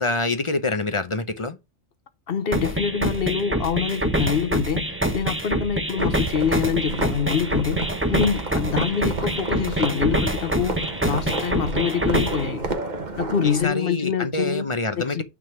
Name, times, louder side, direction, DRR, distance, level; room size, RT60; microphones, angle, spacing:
voice 1, 0.0-1.6 13.4-15.2, left 2 dB, 30° left, 0.7 m, -26 dB
voice 2, 2.3-12.6 13.2-15.2, left 7 dB, 60° left, 1.0 m, -25 dB
sound 1, 2.5-12.5, right 1 dB, 10° right, 1.1 m, -26 dB
sound 2, 6.0-13.6, right 3 dB, 40° right, 1.3 m, -31 dB
9.3 x 3.8 x 5.9 m
omnidirectional pair, 1.2 m